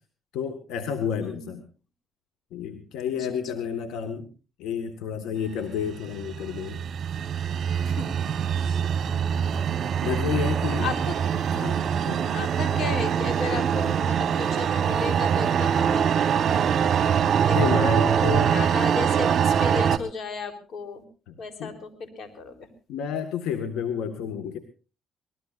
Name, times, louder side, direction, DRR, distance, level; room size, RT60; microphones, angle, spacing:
voice 1, 0.3-1.6 2.5-4.3 4.6-6.8 10.0-10.9 11.5-12.3 17.5-18.5 21.3-21.4 21.6-21.7 22.9-24.6, left 7 dB, 90° left, 8 dB, 1.7 m, -30 dB
voice 2, 1.2-1.5 3.2-3.7 7.9-8.1 8.6-8.8 9.1-9.8 10.7-11.2 12.3-17.6 18.0-21.0 21.4-22.7, left 4 dB, 60° left, 8 dB, 3.9 m, -35 dB
sound 1, 5.9-20.0, right 8 dB, 55° right, 1.3 m, -24 dB
24.5 x 19.5 x 2.6 m, 0.34 s
cardioid pair, 90°, 0 cm